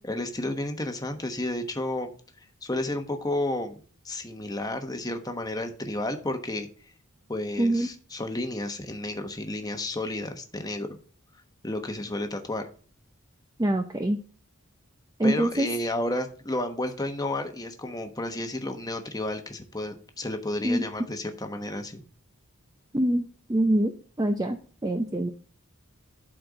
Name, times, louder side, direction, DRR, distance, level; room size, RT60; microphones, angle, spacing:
voice 1, 0.0-2.1 2.6-3.8 4.0-6.7 7.3-11.0 11.6-12.7 15.2-22.0, left 1 dB, 15° left, 6 dB, 1.1 m, -31 dB
voice 2, 7.6-7.9 13.6-14.2 15.2-15.7 20.6-20.8 22.9-23.9 24.2-24.6 24.8-25.3, right 1 dB, 15° right, 5 dB, 0.6 m, -24 dB
11.5 x 4.4 x 5.0 m, 0.42 s
head